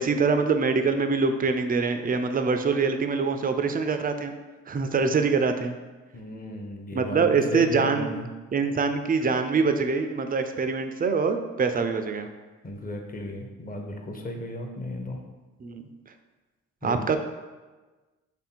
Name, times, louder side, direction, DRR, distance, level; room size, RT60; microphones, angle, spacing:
voice 1, 0.0-4.3 4.7-5.8 6.9-8.1 8.5-12.3 15.6-15.8 16.8-17.2, right 4 dB, 25° right, 7 dB, 0.4 m, -24 dB
voice 2, 6.1-8.3 12.6-15.2 16.8-17.2, left 1 dB, 20° left, 3 dB, 0.7 m, -34 dB
3.3 x 2.6 x 4.4 m, 1.2 s
hypercardioid pair, 40°, 39 cm